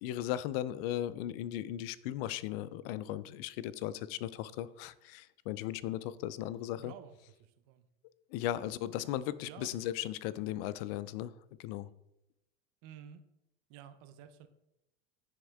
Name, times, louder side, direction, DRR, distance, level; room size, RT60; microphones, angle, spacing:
voice 1, 0.0-6.9 8.3-11.3 11.6-11.9, left 12 dB, 70° left, 17 dB, 0.4 m, -37 dB
voice 2, 6.7-7.9 8.4-8.6 9.5-10.5 12.8-13.2 13.7-14.5, right 9 dB, 60° right, 9 dB, 0.8 m, -53 dB
9.9 x 3.6 x 3.4 m, 0.87 s
supercardioid pair, 115°, 30 cm